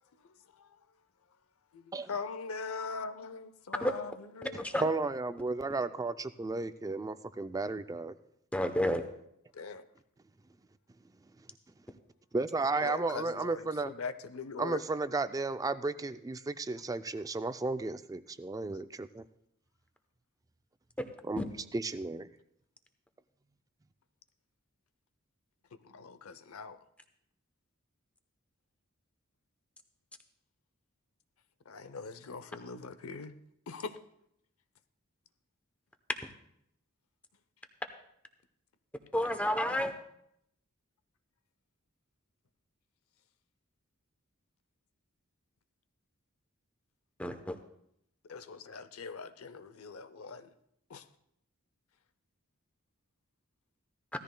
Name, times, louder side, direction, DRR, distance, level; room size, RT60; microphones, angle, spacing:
voice 1, 0.2-0.8 1.7-4.7 9.5-9.8 12.8-14.8 25.7-26.8 31.7-33.4 33.7-34.0 48.2-50.5 50.9-51.1, left 4 dB, 90° left, 0.7 m, -42 dB
voice 2, 4.8-8.1 12.3-13.9 14.6-19.2 21.2-21.4 21.7-22.3, right 3 dB, 15° right, 0.3 m, -33 dB
voice 3, 8.5-9.0 21.0-21.1 21.4-21.5 39.1-39.9 47.2-47.6, left 1 dB, 5° left, 0.8 m, -30 dB
16.5 x 13.5 x 2.2 m
head